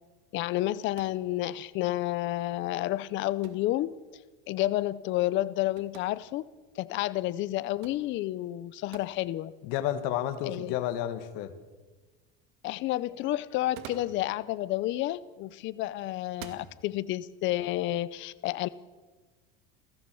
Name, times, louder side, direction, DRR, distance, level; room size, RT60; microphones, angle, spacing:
voice 1, 0.3-3.9 4.5-6.4 6.8-9.5 10.4-10.7 12.6-18.7, left 15 dB, 40° left, 17 dB, 0.7 m, -30 dB
sound 1, 0.9-1.3 3.4-3.7 5.8-6.1 7.8-8.1 8.9-9.1 10.1-10.2 13.5-14.2 15.4-15.7 16.3-16.7, right 9 dB, 70° right, 2.4 m, -47 dB
voice 2, 9.7-11.5, left 11 dB, 70° left, 9 dB, 2.1 m, -31 dB
29.0 x 13.5 x 7.0 m, 1.3 s
cardioid pair, 165°, 30 cm